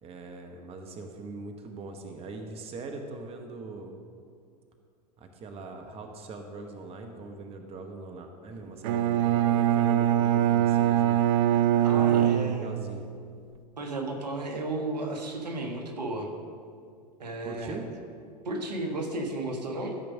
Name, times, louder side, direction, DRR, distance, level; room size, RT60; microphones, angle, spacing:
voice 1, 0.0-4.0 5.2-11.2 11.9-13.1 17.4-17.9, right 3 dB, 30° right, 4 dB, 1.1 m, -41 dB
Bowed string instrument, 8.8-13.0, right 11 dB, 55° right, 0.6 m, -23 dB
voice 2, 11.8-12.8 13.8-16.3 17.2-17.8 18.4-19.9, right 2 dB, 80° right, 2 dB, 1.6 m, -33 dB
13.5 x 5.2 x 6.2 m, 2.2 s
hypercardioid pair, 95°, 21 cm